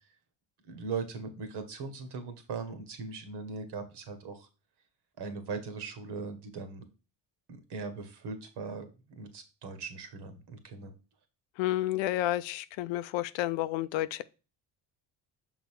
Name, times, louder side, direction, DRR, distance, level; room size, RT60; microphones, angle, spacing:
voice 1, 0.7-4.5 5.2-6.8 7.5-10.9, right 4 dB, 65° right, 1.7 m, -39 dB
voice 2, 11.6-14.2, left 15 dB, 85° left, 0.6 m, -30 dB
6.1 x 4.0 x 4.7 m
cardioid pair, 105°, 44 cm